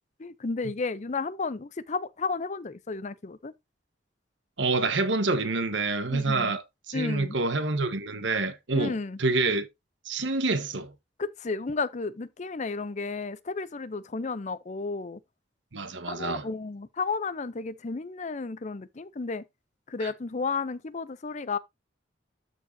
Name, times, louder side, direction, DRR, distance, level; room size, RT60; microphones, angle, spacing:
voice 1, 0.2-3.5 6.1-6.5 6.9-7.4 8.7-9.2 11.2-15.2 16.0-19.4 19.9-21.6, left 4 dB, 40° left, 0.5 m, -32 dB
voice 2, 4.6-9.7 10.0-10.9 15.7-16.5 20.0-20.1, right 3 dB, 70° right, 1.2 m, -27 dB
13.0 x 4.6 x 2.7 m
head